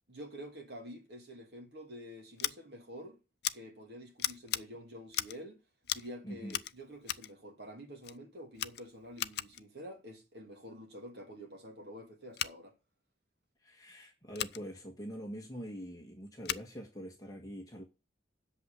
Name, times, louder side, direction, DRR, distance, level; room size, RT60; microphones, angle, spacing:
voice 1, 0.1-3.2 3.5-5.6 5.9-12.7, equal, 60° right, 2.7 m, -48 dB
Scissors, 2.4-2.5 3.4-3.6 4.2-4.6 5.1-5.4 5.8-6.1 6.5-7.3 8.0-8.2 8.5-9.6 12.3-12.5 14.3-14.6 16.4-16.7, left 13 dB, 60° left, 0.5 m, -37 dB
voice 2, 6.2-6.6 13.6-17.8, equal, 20° left, 1.5 m, -44 dB
8.2 x 6.5 x 7.0 m
head